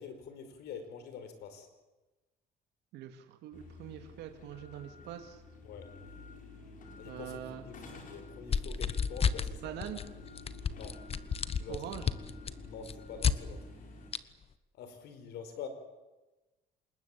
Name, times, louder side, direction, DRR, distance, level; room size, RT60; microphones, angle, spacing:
voice 1, 0.0-1.7 5.6-5.9 7.0-7.4 7.6-9.7 10.7-11.0 11.6-11.8 12.6-13.7 14.7-15.7, left 7 dB, 75° left, 9 dB, 4.7 m, -46 dB
voice 2, 2.9-5.4 7.1-7.6 9.6-10.0 11.7-12.1, right 10 dB, 85° right, 6 dB, 2.6 m, -43 dB
sound 1, 3.5-14.1, left 2 dB, 50° left, 5.5 m, -50 dB
sound 2, 8.5-9.5 9.8-10.1 10.4-13.4 14.1-14.2, left 7 dB, 35° left, 1.2 m, -31 dB
27.0 x 21.0 x 8.5 m, 1.1 s
cardioid pair, 110°, 17 cm